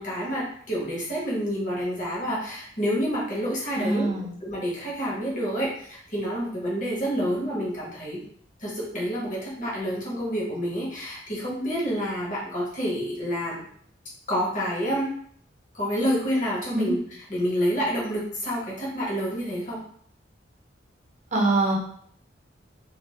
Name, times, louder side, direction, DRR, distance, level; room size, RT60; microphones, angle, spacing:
voice 1, 0.0-4.1 4.4-8.2 8.6-13.7 14.3-15.1 15.7-17.0 17.3-19.8, equal, 40° left, -5 dB, 1.0 m, -28 dB
voice 2, 3.8-4.3 16.7-16.9 21.3-21.8, right 2 dB, 40° right, -1 dB, 0.7 m, -24 dB
2.5 x 2.4 x 3.0 m, 0.62 s
head